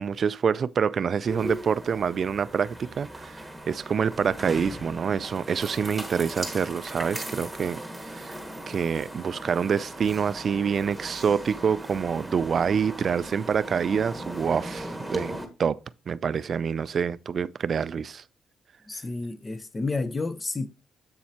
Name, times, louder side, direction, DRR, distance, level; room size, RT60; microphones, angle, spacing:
voice 1, 0.0-8.3 8.7-18.2, right 6 dB, 50° right, 0.3 m, -27 dB
sound 1, 1.3-15.4, right 1 dB, 5° right, 1.5 m, -38 dB
voice 2, 18.9-20.7, left 3 dB, 25° left, 0.7 m, -30 dB
7.5 x 7.0 x 2.9 m
cardioid pair, 90°, 0 cm